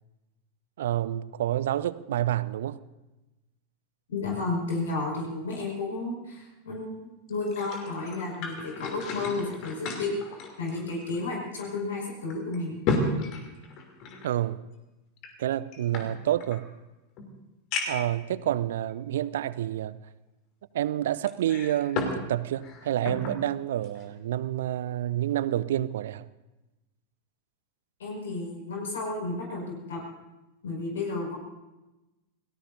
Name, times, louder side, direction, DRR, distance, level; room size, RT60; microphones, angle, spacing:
voice 1, 0.8-2.8 14.2-14.6 15.4-16.7 17.9-20.0 20.7-26.3, right 12 dB, 60° right, 0.6 m, -28 dB
voice 2, 4.1-12.8 28.0-29.6 29.9-30.0 30.6-31.4, left 3 dB, 65° left, 5.3 m, -32 dB
sound 1, 7.3-11.3 11.6-11.7 12.3-14.3 15.2-16.6 17.2-17.3 17.7-18.1 18.9-19.0 21.3-22.2 22.5-23.4 23.8-24.0, left 3 dB, 40° left, 3.0 m, -33 dB
29.0 x 18.5 x 2.7 m
figure-of-eight pair, 90°, 0 cm